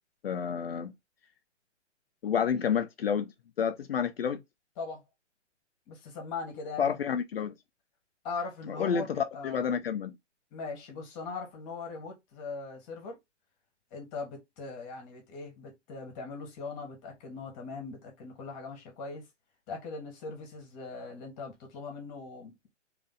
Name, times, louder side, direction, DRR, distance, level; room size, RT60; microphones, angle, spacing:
voice 1, 0.2-0.9 2.2-3.3 3.6-4.4 6.8-7.5 8.7-10.1, left 7 dB, 55° left, 0.7 m, -29 dB
voice 2, 5.9-6.9 8.2-9.1 9.3-9.7 10.5-13.2 13.9-19.2 19.7-22.7, left 4 dB, 25° left, 1.5 m, -40 dB
3.8 x 3.4 x 3.8 m
figure-of-eight pair, 135°, 36 cm